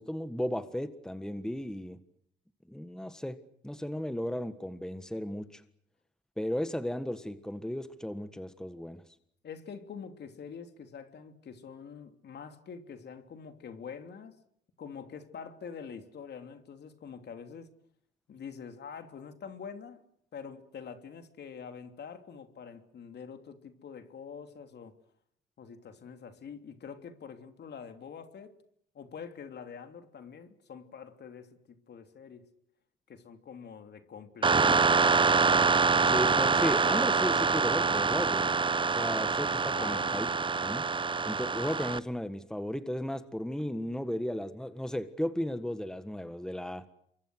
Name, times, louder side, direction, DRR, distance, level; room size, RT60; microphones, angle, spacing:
voice 1, 0.0-2.0 2.7-3.4 3.6-5.6 6.4-9.0 36.0-38.5 38.9-40.3 40.6-40.9 41.2-46.9, left 1 dB, 5° left, 1.6 m, -35 dB
voice 2, 9.4-14.4 14.8-17.7 18.3-20.0 20.3-24.9 25.6-28.6 28.9-32.5 33.1-35.0 39.8-40.1, left 6 dB, 60° left, 3.1 m, -45 dB
sound 1, 34.4-42.0, right 4 dB, 25° right, 0.9 m, -25 dB
28.0 x 23.5 x 6.4 m
cardioid pair, 90°, 20 cm